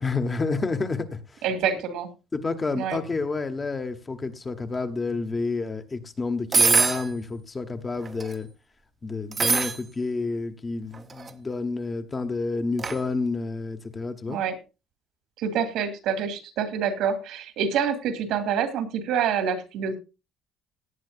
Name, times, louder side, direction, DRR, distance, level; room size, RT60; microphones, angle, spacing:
voice 1, 0.0-1.4 2.3-8.5 9.0-14.4, left 3 dB, 20° left, 7 dB, 1.0 m, -29 dB
voice 2, 1.4-2.1 2.7-3.0 14.3-14.6 15.4-19.9, right 7 dB, 70° right, 9 dB, 2.4 m, -27 dB
sound 1, 6.5-7.1 8.0-8.3 9.3-9.8 10.9-11.3 12.8-13.0, right 5 dB, 25° right, 0.8 m, -22 dB
17.5 x 10.0 x 2.5 m, 0.28 s
cardioid pair, 160°, 0 cm